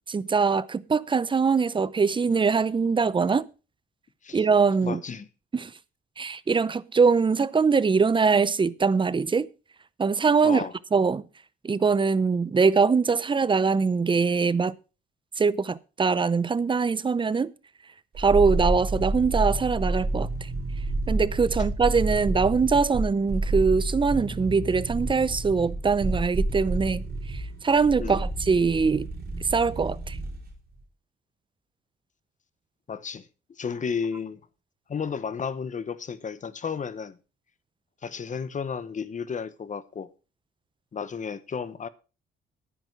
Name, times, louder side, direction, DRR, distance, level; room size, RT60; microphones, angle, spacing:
voice 1, 0.1-3.5 4.3-5.0 5.5-5.7 6.2-9.5 10.0-10.7 10.9-11.3 11.6-14.7 15.4-17.5 18.2-20.5 21.1-27.0 27.3-29.1 29.5-30.2, right 5 dB, 25° right, 0.7 m, -23 dB
voice 2, 4.8-5.3 10.4-10.7 28.0-28.3 32.9-33.3 33.6-34.4 34.9-37.2 38.0-40.1 40.9-41.9, left 6 dB, 40° left, 1.1 m, -33 dB
sound 1, 18.1-30.5 30.8-30.9, right 2 dB, 50° right, 4.6 m, -29 dB
10.5 x 10.0 x 4.6 m
cardioid pair, 90°, 20 cm